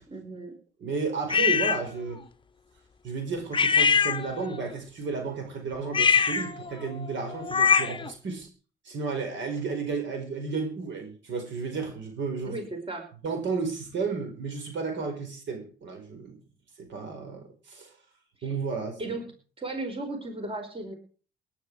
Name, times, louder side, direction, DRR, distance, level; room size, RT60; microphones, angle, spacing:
voice 1, 0.1-0.5 12.4-13.1 18.4-18.5 19.0-19.2 19.6-20.9, right 2 dB, 30° right, 4 dB, 4.8 m, -35 dB
voice 2, 0.8-2.2 3.0-8.5 8.8-12.6 13.2-16.4 16.8-17.9 18.4-19.1, right 4 dB, 70° right, 5 dB, 5.0 m, -33 dB
sound 1, 1.3-1.8 3.5-4.6 5.9-8.1, left 6 dB, 25° left, 0.8 m, -23 dB
19.0 x 10.5 x 4.8 m, 0.40 s
cardioid pair, 90°, 20 cm